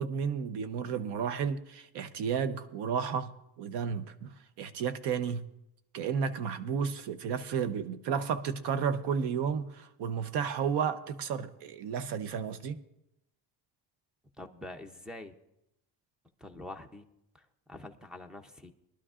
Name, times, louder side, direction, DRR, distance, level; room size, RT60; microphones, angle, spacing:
voice 1, 0.0-3.3 3.6-5.5 5.9-12.8, right 7 dB, 75° right, 12 dB, 0.9 m, -32 dB
voice 2, 14.4-15.3 16.4-17.0 17.3-18.7, left 1 dB, ahead, 8 dB, 0.6 m, -45 dB
22.5 x 12.0 x 2.5 m, 0.85 s
cardioid pair, 170°, 42 cm